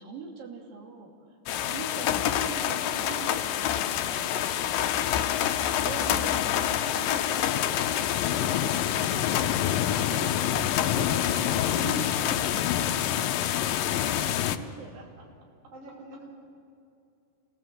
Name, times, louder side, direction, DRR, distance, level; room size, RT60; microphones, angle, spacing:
voice 1, 0.0-1.4 1.7-5.4 5.8-10.3 10.9-15.1, right 5 dB, 85° right, 0 dB, 4.5 m, -43 dB
sound 1, 1.5-14.6, left 11 dB, 90° left, 2.5 m, -26 dB
voice 2, 2.0-2.4 5.9-6.9 8.4-10.1 14.1-14.2 15.7-16.3, right 2 dB, 60° right, -1 dB, 4.6 m, -46 dB
27.5 x 18.0 x 7.7 m, 2.6 s
omnidirectional pair, 3.9 m